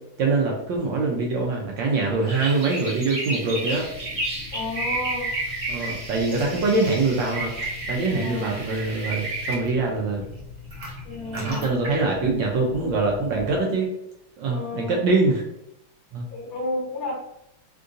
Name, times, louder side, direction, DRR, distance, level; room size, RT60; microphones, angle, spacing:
voice 1, 0.2-3.9 5.7-7.5 7.9-10.2 11.3-13.9 14.4-15.4 16.1-16.3, right 3 dB, 75° right, -1 dB, 1.1 m, -24 dB
sound 1, 2.2-9.5, right 2 dB, 35° right, 1.3 m, -31 dB
sound 2, 3.6-13.6, left 3 dB, 55° right, 0.8 m, -40 dB
voice 2, 4.5-5.3 6.3-6.6 8.1-8.6 11.0-11.6 14.5-15.0 16.3-17.1, left 2 dB, 55° left, -3 dB, 1.1 m, -32 dB
3.6 x 2.5 x 2.4 m, 0.80 s
omnidirectional pair, 2.4 m